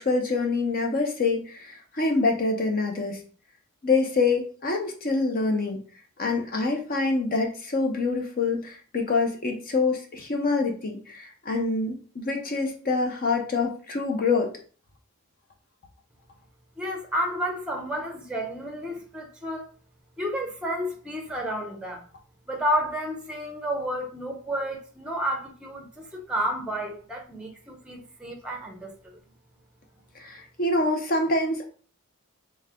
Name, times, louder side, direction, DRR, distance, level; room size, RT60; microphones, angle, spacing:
voice 1, 0.0-3.2 3.8-5.8 6.2-14.5 30.2-31.6, left 3 dB, 40° left, 0.7 m, -26 dB
voice 2, 16.8-19.7 20.2-22.0 22.5-28.9, equal, 5° right, 0.7 m, -31 dB
3.3 x 3.1 x 3.6 m
head